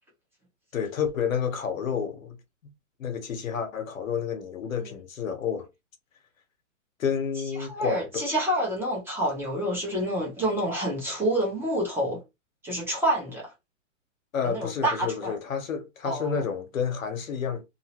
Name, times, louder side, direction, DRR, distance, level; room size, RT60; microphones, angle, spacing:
voice 1, 0.7-2.4 3.0-5.7 7.0-8.2 14.3-17.6, left 7 dB, 85° left, 1.2 m, -30 dB
voice 2, 7.5-12.2 12.6-13.5 14.4-15.4 16.0-16.3, right 1 dB, 5° right, 1.0 m, -28 dB
2.8 x 2.7 x 2.9 m
hypercardioid pair, 150°, 39 cm